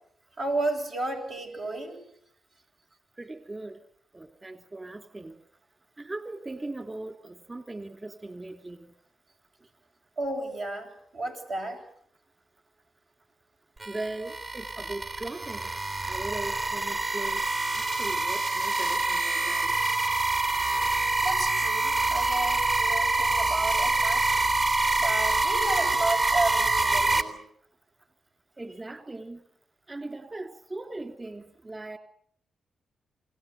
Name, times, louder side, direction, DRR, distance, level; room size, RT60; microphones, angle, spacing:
voice 1, 0.4-2.0 10.2-11.8 21.2-24.4 25.0-27.4, right 2 dB, 75° right, 0 dB, 7.9 m, -32 dB
voice 2, 3.2-3.8 4.1-5.4 6.0-8.9 13.9-15.7 16.0-17.4 17.7-19.7 28.6-29.4 29.9-32.0, right 2 dB, 30° right, 7 dB, 2.8 m, -39 dB
sound 1, 13.8-27.2, right 2 dB, 50° right, 3.1 m, -26 dB
28.0 x 19.5 x 7.9 m, 0.68 s
supercardioid pair, 55°, 0 cm